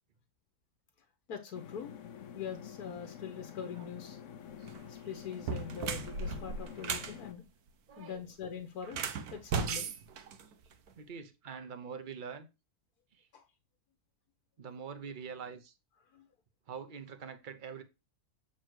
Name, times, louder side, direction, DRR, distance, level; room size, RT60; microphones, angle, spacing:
voice 1, 1.3-1.9 2.3-4.2 4.9-7.4 8.0-9.9 13.3-13.4 16.1-16.3, left 7 dB, 85° left, 1.5 m, -43 dB
sound 1, 1.5-7.3, left 8 dB, 60° left, 1.0 m, -48 dB
sound 2, 4.5-4.8 5.3-7.2 8.8-10.9, right 5 dB, 85° right, 1.4 m, -36 dB
voice 2, 7.9-8.4 11.0-12.5 13.1-13.3 14.6-15.7 16.7-17.8, right 6 dB, 40° right, 0.9 m, -45 dB
7.6 x 4.3 x 4.7 m
omnidirectional pair, 1.6 m